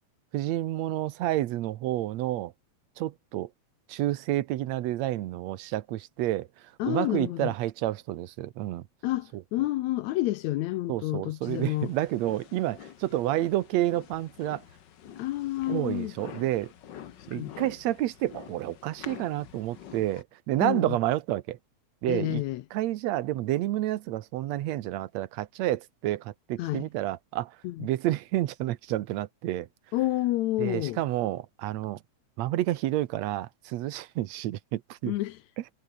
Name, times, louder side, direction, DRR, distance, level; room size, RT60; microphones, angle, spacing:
voice 1, 0.3-2.5 3.0-3.5 3.9-6.5 6.8-8.8 10.9-14.6 15.7-16.7 17.3-21.6 22.0-22.4 22.7-27.5 27.8-29.7 30.6-32.0 32.4-35.1, right 14 dB, 75° right, 2.0 m, -29 dB
voice 2, 6.8-7.5 9.0-11.9 15.2-16.2 17.3-17.6 20.6-21.0 22.1-22.7 26.6-26.9 27.6-27.9 29.9-31.0 35.1-35.4, left 16 dB, 80° left, 2.0 m, -29 dB
sound 1, 11.5-20.2, left 10 dB, 55° left, 1.2 m, -47 dB
omnidirectional pair, 3.3 m